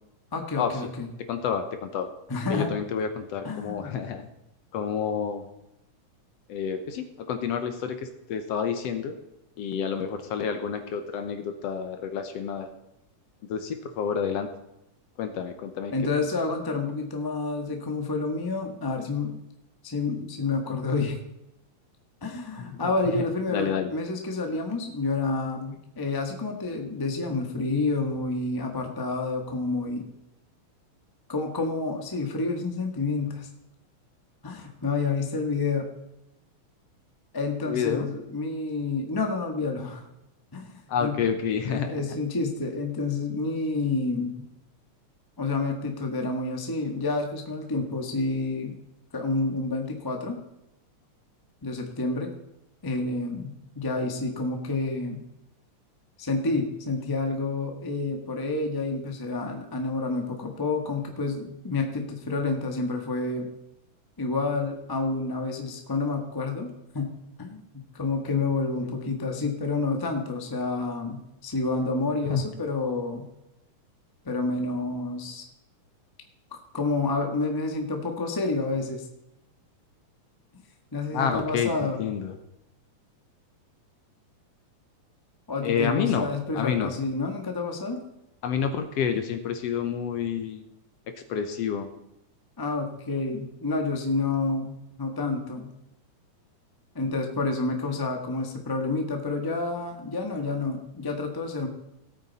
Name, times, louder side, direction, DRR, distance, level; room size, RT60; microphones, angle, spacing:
voice 1, 0.3-1.1 2.3-2.7 3.4-4.0 15.9-19.4 19.8-21.2 22.2-30.1 31.3-33.5 34.4-35.9 37.3-40.1 40.5-40.7 41.0-41.2 41.7-44.4 45.4-48.7 49.1-50.4 51.6-52.3 52.8-55.2 56.2-63.5 64.2-73.3 74.2-75.4 76.5-79.1 80.9-82.0 85.5-88.0 92.6-95.7 96.9-101.7, left 3 dB, 20° left, 3 dB, 0.5 m, -29 dB
voice 2, 1.3-2.1 2.5-4.3 4.7-5.5 6.5-9.1 9.6-12.7 13.5-14.5 15.2-15.9 22.6-22.8 23.1-23.9 37.7-38.1 40.9-41.9 68.8-68.9 72.3-72.5 81.1-82.4 85.6-86.3 86.5-86.9 88.4-90.6 91.3-91.9, left 7 dB, 65° left, 8 dB, 1.8 m, -29 dB
17.5 x 8.9 x 4.2 m, 0.88 s
omnidirectional pair, 3.4 m